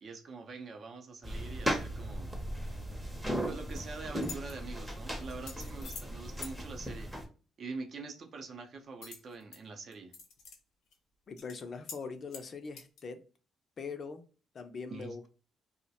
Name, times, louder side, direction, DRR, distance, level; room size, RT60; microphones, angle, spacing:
voice 1, 0.0-2.4 3.5-7.2 7.6-10.2 14.9-15.2, right 4 dB, 55° right, 0.5 m, -44 dB
sound 1, 1.2-7.2, equal, 5° right, 0.6 m, -37 dB
sound 2, 3.4-3.8 4.2-4.5 5.3-6.1 6.4-6.5 9.0-9.6 9.9-10.6 10.9-11.0 11.4-11.6 11.9-12.0 12.3-13.0, left 5 dB, 85° left, 0.6 m, -46 dB
voice 2, 11.3-13.2 13.8-14.2 14.5-15.3, left 5 dB, 50° left, 0.4 m, -42 dB
2.3 x 2.1 x 2.7 m
cardioid pair, 90°, 0 cm